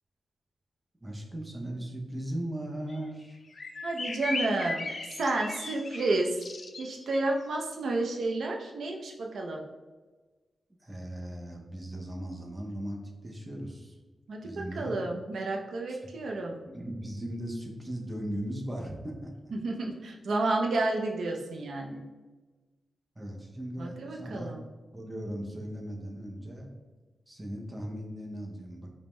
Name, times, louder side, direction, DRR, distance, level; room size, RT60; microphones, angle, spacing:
voice 1, 1.0-3.4 10.8-14.0 14.4-14.9 15.9-16.0 16.6-19.5 23.2-24.5 24.9-26.7 27.3-28.9, right 1 dB, 15° right, 0 dB, 0.6 m, -38 dB
sound 1, 2.9-3.0 3.2-3.3 3.5-7.2, left 3 dB, 45° left, 0.3 m, -37 dB
voice 2, 3.8-6.4 6.8-9.6 14.3-16.6 19.5-22.0 23.8-24.6, right 2 dB, 80° right, 1 dB, 0.4 m, -31 dB
5.1 x 2.1 x 3.1 m, 1.3 s
wide cardioid pair, 115°, 0 cm